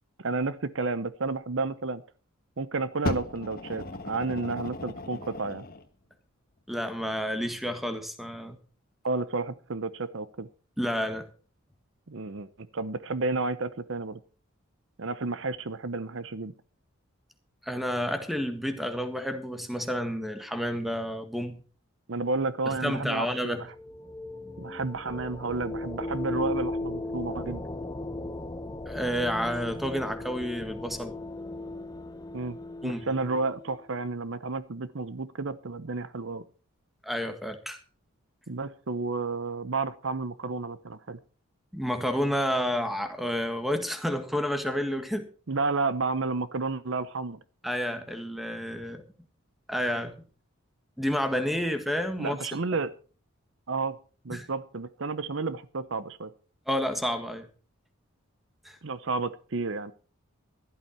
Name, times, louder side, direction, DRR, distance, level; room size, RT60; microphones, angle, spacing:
voice 1, 0.2-2.0 2.6-5.7 9.0-10.5 12.1-12.5 12.7-14.2 15.0-16.5 22.1-23.6 24.6-27.7 32.3-32.6 32.8-36.4 38.5-41.2 45.5-47.4 52.2-52.9 53.7-54.0 54.2-56.3 58.8-59.9, right 3 dB, 60° right, 0.8 m, -31 dB
Fire, 3.0-5.9 6.7-6.8, left 2 dB, 45° left, 1.4 m, -36 dB
voice 2, 6.7-8.6 10.8-11.3 17.6-21.6 22.6-23.7 28.8-31.1 32.8-33.0 37.0-37.8 41.7-45.3 47.6-49.0 49.7-50.2 51.0-52.4 54.3-54.5 56.7-57.5 58.6-58.8, equal, ahead, 1.6 m, -30 dB
sound 1, 23.3-33.8, left 2 dB, 15° left, 0.7 m, -37 dB
15.5 x 12.0 x 4.4 m
head